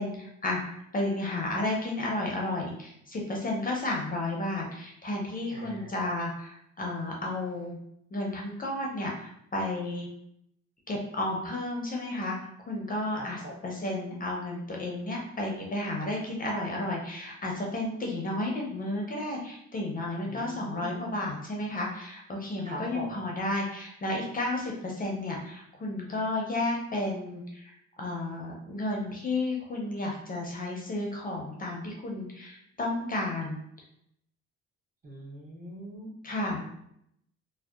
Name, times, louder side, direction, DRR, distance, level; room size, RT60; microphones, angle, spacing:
voice 1, 0.0-7.8 8.1-10.1 10.9-33.6 36.2-36.6, left 2 dB, 30° left, -1 dB, 0.5 m, -32 dB
voice 2, 5.5-5.9 13.1-13.5 20.2-21.1 22.6-23.1 35.0-36.3, right 1 dB, 25° right, -3 dB, 0.7 m, -41 dB
2.6 x 2.1 x 2.3 m, 0.74 s
cardioid pair, 90°, 30 cm